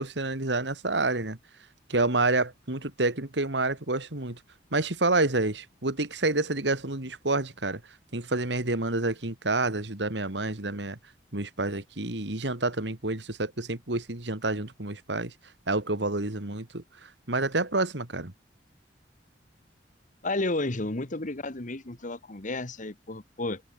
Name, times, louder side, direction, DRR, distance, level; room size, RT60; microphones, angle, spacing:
voice 1, 0.0-1.4 1.9-4.4 4.7-7.8 8.1-11.0 11.3-15.3 15.7-18.3, right 2 dB, 70° right, 2.6 m, -28 dB
voice 2, 20.2-23.6, left 2 dB, 45° left, 1.7 m, -32 dB
head